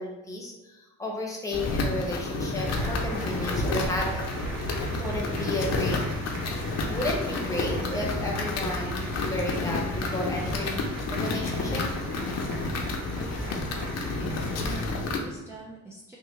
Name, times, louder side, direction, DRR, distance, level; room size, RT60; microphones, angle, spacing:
voice 1, 0.0-4.2 4.5-6.0 6.9-10.8 11.1-11.8, left 1 dB, 10° left, -2 dB, 0.8 m, -33 dB
sound 1, 1.5-15.2, left 2 dB, 60° left, 0.6 m, -30 dB
Applause, 2.6-14.9, right 2 dB, 75° right, 0.8 m, -43 dB
voice 2, 13.2-13.8 14.2-16.2, right 2 dB, 10° right, -2 dB, 0.4 m, -45 dB
3.3 x 2.2 x 3.1 m, 1.1 s
cardioid pair, 90°, 30 cm